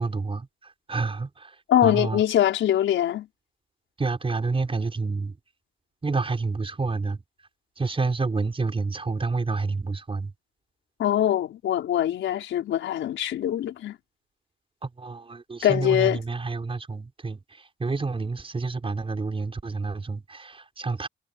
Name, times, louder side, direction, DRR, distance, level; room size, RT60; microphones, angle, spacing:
voice 1, 0.0-1.6 1.8-2.2 4.0-5.4 6.0-7.2 7.8-10.3 14.8-21.1, right 3 dB, 25° right, 6.0 m, -29 dB
voice 2, 1.7-3.3 11.0-14.0 15.6-16.2, left 11 dB, 75° left, 5.3 m, -23 dB
cardioid pair, 90°, 20 cm